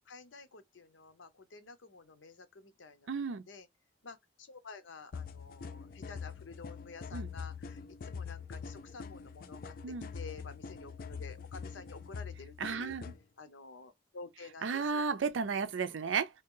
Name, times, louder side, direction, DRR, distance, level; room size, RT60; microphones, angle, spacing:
voice 1, 0.1-3.7 4.0-13.0 13.4-15.1, left 4 dB, 90° left, 0.7 m, -51 dB
voice 2, 3.1-3.4 7.1-7.3 9.8-10.1 12.6-13.1 14.6-16.3, right 5 dB, 90° right, 0.5 m, -33 dB
sound 1, 5.1-13.2, left 5 dB, 50° left, 0.3 m, -44 dB
2.8 x 2.8 x 3.6 m
head